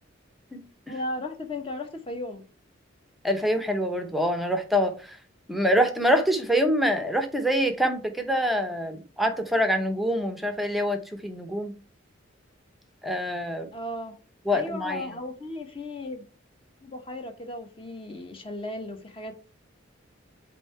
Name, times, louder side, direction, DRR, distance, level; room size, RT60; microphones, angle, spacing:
voice 1, 0.9-2.4 13.7-14.1 14.5-16.3 16.8-19.5, left 1 dB, 25° left, 0.9 m, -36 dB
voice 2, 3.2-4.9 5.5-11.7 13.0-13.7 14.5-15.1, equal, ahead, 0.7 m, -25 dB
8.2 x 2.8 x 4.4 m
head